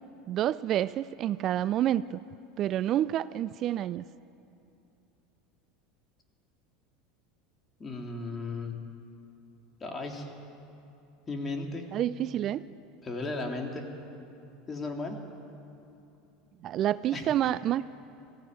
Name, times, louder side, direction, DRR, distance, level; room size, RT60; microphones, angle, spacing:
voice 1, 0.3-2.2 2.6-4.0 11.9-12.7 16.6-17.9, right 12 dB, 45° right, 16 dB, 0.4 m, -28 dB
voice 2, 7.8-8.8 9.8-10.3 11.3-11.9 13.0-13.9 14.7-15.2 17.1-17.3, left 3 dB, 25° left, 2 dB, 3.3 m, -35 dB
21.0 x 15.5 x 9.4 m, 2.7 s
hypercardioid pair, 80°, 0 cm